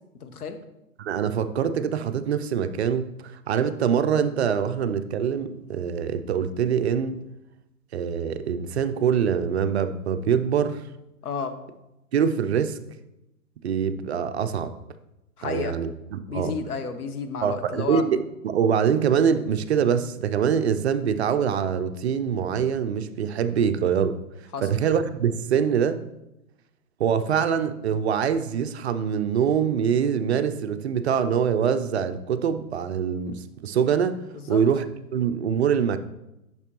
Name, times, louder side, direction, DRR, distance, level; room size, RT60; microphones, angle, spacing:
voice 1, 0.2-0.6 11.2-11.6 15.4-15.7 16.3-18.0 24.5-24.7 34.3-34.6, left 5 dB, 85° left, 8 dB, 1.1 m, -31 dB
voice 2, 1.0-3.1 3.5-7.2 7.9-10.8 12.1-12.8 13.6-14.7 15.4-16.5 17.4-24.2 24.6-26.0 27.0-34.2 34.5-34.9 35.1-36.0, right 7 dB, 50° right, 10 dB, 0.5 m, -24 dB
8.8 x 6.0 x 3.0 m, 0.91 s
hypercardioid pair, 140°, 44 cm